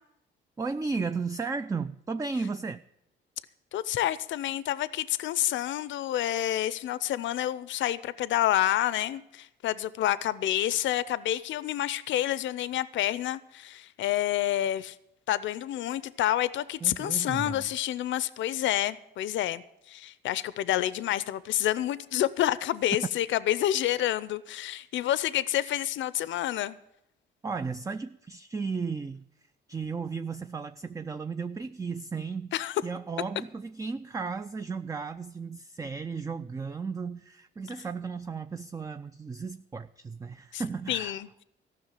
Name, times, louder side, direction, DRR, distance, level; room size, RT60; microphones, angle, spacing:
voice 1, 0.6-2.8 16.8-17.7 27.4-29.2 29.7-41.2, right 4 dB, 15° right, 0.4 m, -34 dB
voice 2, 3.7-15.0 15.3-26.8 32.5-32.8 40.5-40.6 40.9-41.3, left 13 dB, 70° left, 0.6 m, -28 dB
14.5 x 6.2 x 9.0 m
cardioid pair, 90°, 20 cm